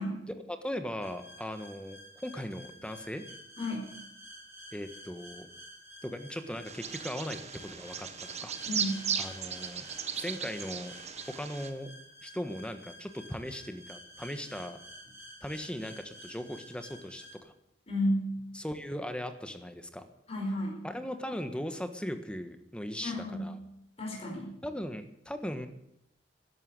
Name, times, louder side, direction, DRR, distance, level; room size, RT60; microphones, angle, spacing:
voice 1, 0.3-3.2 4.7-5.5 6.0-8.1 8.4-8.5 9.2-9.9 10.1-10.9 11.3-11.9 12.2-14.8 15.4-17.5 18.5-20.0 20.8-23.6 24.6-25.7, equal, 5° left, 8 dB, 1.3 m, -38 dB
sound 1, 1.0-17.4, equal, 15° right, 5.8 m, -51 dB
voice 2, 3.6-3.9 8.7-9.1 17.9-18.3 20.3-20.8 23.0-23.6 24.0-24.5, left 1 dB, 35° left, 0 dB, 4.7 m, -32 dB
Bird vocalization bird call bird song, 6.7-11.7, right 7 dB, 35° right, 1.3 m, -37 dB
13.5 x 11.5 x 9.4 m, 0.77 s
head